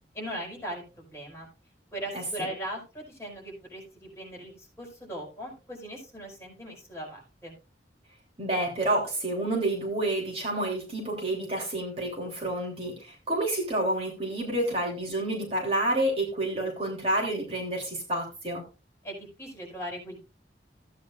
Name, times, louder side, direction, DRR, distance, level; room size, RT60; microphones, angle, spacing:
voice 1, 0.1-1.5 1.9-7.5 19.0-20.2, right 1 dB, 15° left, -2 dB, 5.2 m, -39 dB
voice 2, 8.4-18.6, right 1 dB, 35° right, -1 dB, 3.1 m, -29 dB
15.5 x 9.4 x 2.4 m, 0.31 s
head